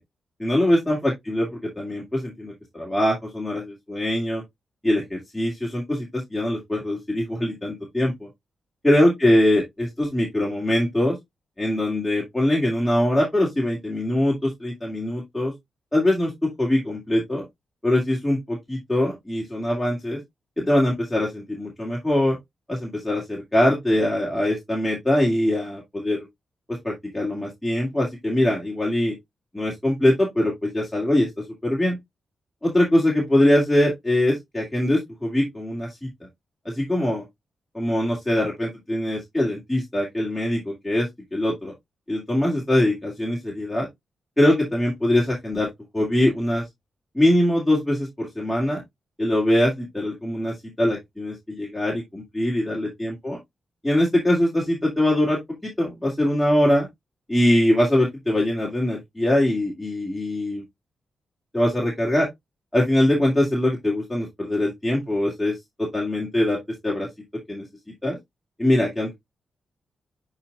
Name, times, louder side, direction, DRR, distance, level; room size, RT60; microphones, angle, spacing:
voice 1, 0.4-4.4 4.8-8.3 8.8-11.2 11.6-15.5 15.9-16.3 16.6-17.4 17.8-20.2 20.6-22.4 22.7-26.2 26.7-29.1 29.5-31.3 31.6-32.0 32.6-36.1 36.6-37.2 37.7-41.7 42.1-43.9 44.4-45.7 45.9-46.6 47.1-48.8 49.2-53.4 53.8-56.9 57.3-60.6 61.5-62.3 62.7-67.1 67.5-67.7 68.0-68.2 68.6-69.1, left 1 dB, 5° left, 2.4 m, -22 dB
11.0 x 4.0 x 2.4 m
cardioid pair, 95°, 0 cm